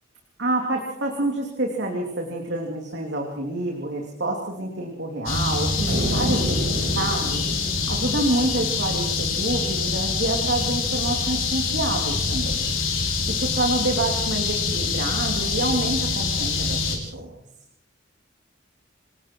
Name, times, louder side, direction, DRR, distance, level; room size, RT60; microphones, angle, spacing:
voice 1, 0.4-7.5 7.9-12.6 13.3-16.8 17.1-17.3, right 2 dB, 60° right, 1 dB, 3.1 m, -27 dB
sound 1, 5.3-17.0, left 4 dB, 85° left, 5.4 m, -25 dB
sound 2, 5.9-9.3, right 1 dB, 75° right, 6.0 m, -31 dB
28.0 x 20.0 x 4.7 m, 0.74 s
head